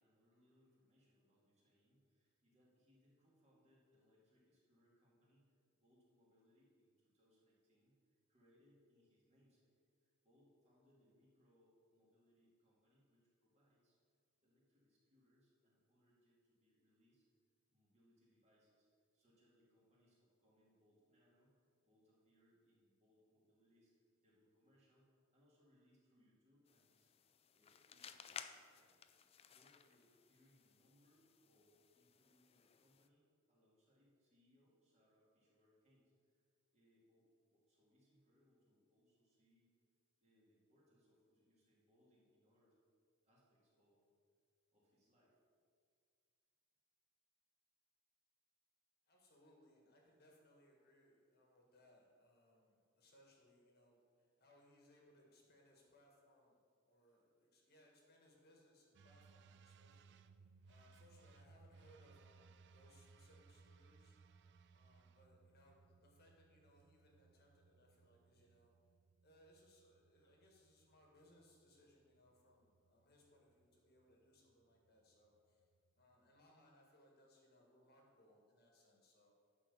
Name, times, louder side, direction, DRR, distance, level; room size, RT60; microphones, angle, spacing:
voice 1, 0.0-9.7 10.0-14.0 14.4-17.3 17.7-27.1 27.5-29.0 29.5-36.5 36.7-39.7 40.2-42.8 43.2-44.0 44.7-45.4 57.0-57.2, equal, 30° right, -6 dB, 2.4 m, -75 dB
sound 1, 26.7-33.1, left 7 dB, 30° left, 0.3 m, -58 dB
voice 2, 49.1-56.6 56.8-64.1 64.7-68.7 69.2-75.7 76.0-79.3, left 1 dB, 50° left, 0 dB, 1.5 m, -70 dB
sound 2, 58.9-76.4, right 4 dB, 55° right, 0.3 m, -67 dB
9.5 x 4.2 x 6.9 m, 2.1 s
head